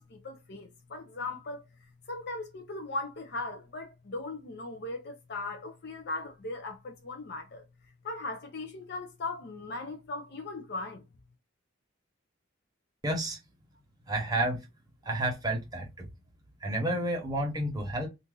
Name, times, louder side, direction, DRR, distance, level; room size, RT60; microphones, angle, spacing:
voice 1, 0.0-1.6 2.1-7.6 8.0-11.0, left 2 dB, 55° left, 0.6 m, -38 dB
voice 2, 13.0-13.4 14.1-14.6 15.0-16.1 16.6-18.1, right 1 dB, 20° right, 1.0 m, -30 dB
2.7 x 2.5 x 3.6 m
head